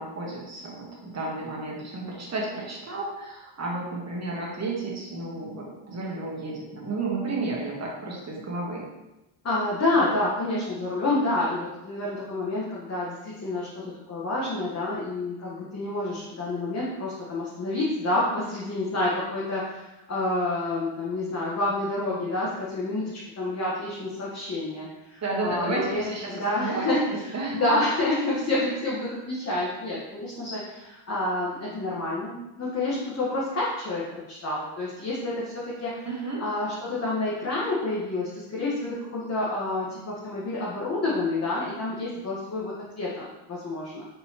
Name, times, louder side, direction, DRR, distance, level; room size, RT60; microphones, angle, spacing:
voice 1, 0.0-8.8 25.2-26.9 27.3-27.7 36.0-36.4, right 3 dB, 30° right, -3 dB, 1.2 m, -32 dB
voice 2, 9.4-36.1 36.4-44.1, left 2 dB, 30° left, -6 dB, 1.1 m, -28 dB
4.5 x 4.0 x 2.8 m, 1.0 s
cardioid pair, 95°, 49 cm